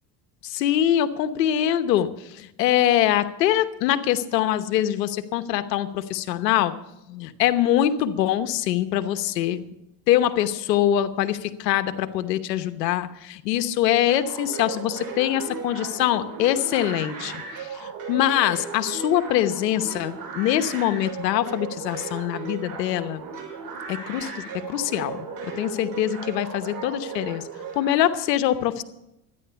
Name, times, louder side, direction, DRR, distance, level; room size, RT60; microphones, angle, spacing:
voice 1, 0.4-2.1 2.4-6.7 7.1-9.6 10.1-17.3 17.8-23.3 23.9-25.3 25.6-27.4 27.8-28.8, left 12 dB, 85° left, 11 dB, 1.1 m, -23 dB
sound 1, 14.1-28.0, right 5 dB, 45° right, 6.5 m, -36 dB
13.0 x 10.5 x 6.9 m, 0.87 s
hypercardioid pair, 80°, 48 cm